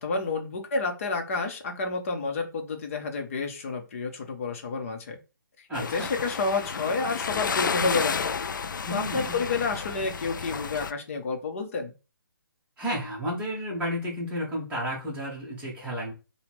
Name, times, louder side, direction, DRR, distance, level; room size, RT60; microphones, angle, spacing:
voice 1, 0.0-5.2 5.9-8.3 8.9-11.9, left 4 dB, 40° left, 0.9 m, -30 dB
sound 1, 5.7-10.9, left 6 dB, 60° left, 0.4 m, -31 dB
voice 2, 5.7-6.1 8.9-9.4 12.8-16.1, equal, 10° right, 1.4 m, -32 dB
4.7 x 2.3 x 3.5 m
figure-of-eight pair, 140°, 12 cm